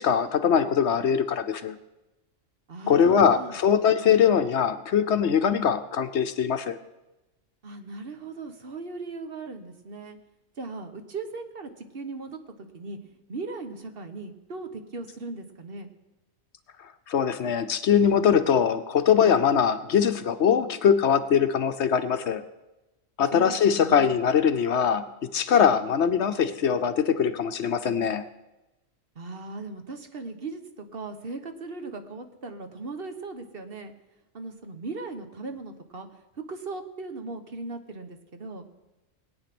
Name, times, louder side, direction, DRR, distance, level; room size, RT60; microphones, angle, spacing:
voice 1, 0.0-1.8 2.9-6.8 17.1-22.4 23.2-25.0 25.3-28.2, left 7 dB, 60° left, 10 dB, 1.0 m, -22 dB
voice 2, 2.7-3.6 7.6-10.2 10.6-13.0 13.3-15.9 23.3-24.2 29.1-33.9 34.3-36.1 36.5-38.7, right 3 dB, 45° right, 7 dB, 1.3 m, -38 dB
20.0 x 9.1 x 6.0 m, 1.0 s
omnidirectional pair, 1.4 m